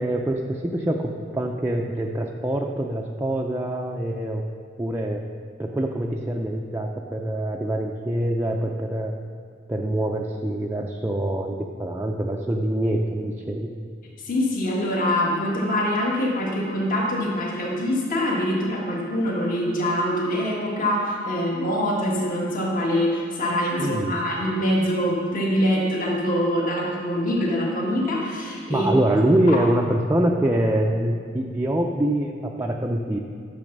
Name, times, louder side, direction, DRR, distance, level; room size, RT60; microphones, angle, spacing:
voice 1, 0.0-4.4 4.8-5.2 5.6-9.1 9.7-13.7 23.8-24.2 28.7-33.2, right 1 dB, 10° right, 0 dB, 0.5 m, -24 dB
voice 2, 14.2-28.9 29.5-29.6, equal, 45° left, -3 dB, 1.6 m, -24 dB
11.0 x 6.9 x 5.3 m, 2.1 s
head